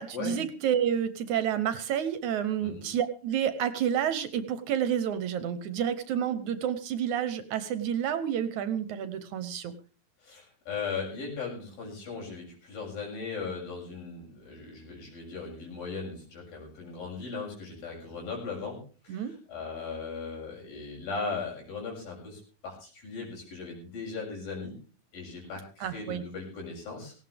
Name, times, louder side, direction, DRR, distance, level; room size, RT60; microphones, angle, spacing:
voice 1, 0.0-9.8 19.1-19.3 25.8-26.2, right 9 dB, 70° right, 12 dB, 2.1 m, -29 dB
voice 2, 10.2-24.7 25.1-27.1, left 4 dB, 85° left, -1 dB, 8.7 m, -38 dB
18.0 x 17.0 x 3.5 m, 0.36 s
omnidirectional pair, 4.0 m